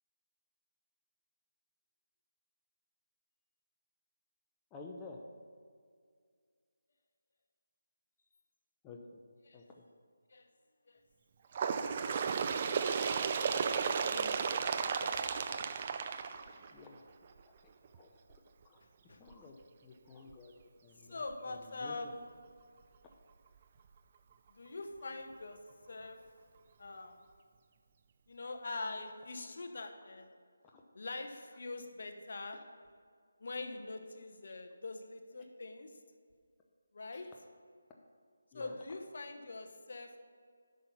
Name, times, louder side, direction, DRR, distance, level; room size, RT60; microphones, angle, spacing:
voice 1, 4.7-5.2 8.8-9.2 9.5-9.6 12.1-12.3 14.0-14.3 16.0-16.1 16.4-17.0 17.9-18.8 19.2-20.5 20.8-21.2 21.5-22.0 30.7-30.8 37.1-37.3 38.5-38.8, left 3 dB, 15° left, 0 dB, 0.7 m, -52 dB
Bird, 11.5-17.0 17.8-18.0 18.3-18.4 19.3-19.4 20.3-20.4 21.3-21.4, right 6 dB, 35° right, 0.5 m, -34 dB
voice 2, 14.7-15.6 19.1-19.2 21.1-22.3 24.5-25.6 25.9-26.2 26.8-27.2 28.3-30.3 30.9-32.6 33.4-35.9 36.9-37.3 38.5-40.2, left 3 dB, 55° left, 5 dB, 1.0 m, -44 dB
10.5 x 5.7 x 6.9 m, 2.1 s
figure-of-eight pair, 160°, 0 cm